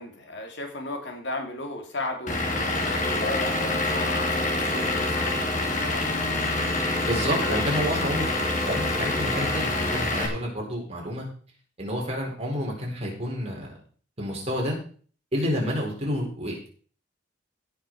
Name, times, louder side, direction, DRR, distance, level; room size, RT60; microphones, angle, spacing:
voice 1, 0.0-6.1 7.4-7.7, left 2 dB, 65° left, 4 dB, 2.4 m, -35 dB
Vehicle / Engine, 2.3-10.3, left 2 dB, 40° left, 2.7 m, -26 dB
voice 2, 7.0-8.3 8.6-11.3 11.8-13.7 14.2-14.8 15.3-16.7, equal, 35° right, -1 dB, 4.4 m, -29 dB
16.5 x 6.5 x 4.8 m, 0.44 s
head